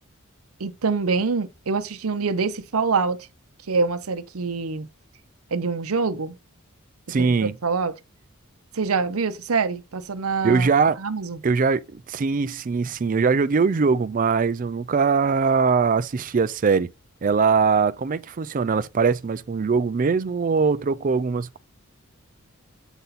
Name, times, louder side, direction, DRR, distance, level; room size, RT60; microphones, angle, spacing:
voice 1, 0.6-3.3 3.7-4.9 5.5-6.4 7.2-7.9 8.7-10.7 11.0-11.4, right 4 dB, 90° right, 0.7 m, -25 dB
voice 2, 7.1-7.5 10.4-11.0 11.4-16.9 17.2-21.6, right 5 dB, 40° right, 0.4 m, -21 dB
8.0 x 4.0 x 4.0 m
head